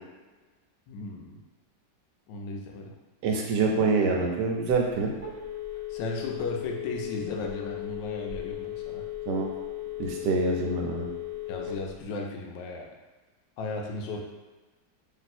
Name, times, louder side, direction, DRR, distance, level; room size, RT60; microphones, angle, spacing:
voice 1, 0.9-1.4 2.3-2.9 5.9-9.0 11.5-12.8 13.6-14.2, left 3 dB, 85° left, 1 dB, 1.3 m, -35 dB
voice 2, 3.2-5.1 9.3-9.5 10.0-11.1, right 4 dB, 75° right, 0 dB, 1.2 m, -26 dB
Telephone, 4.9-12.0, left 13 dB, 45° right, 0.8 m, -36 dB
3.3 x 2.7 x 4.1 m, 1.2 s
omnidirectional pair, 1.9 m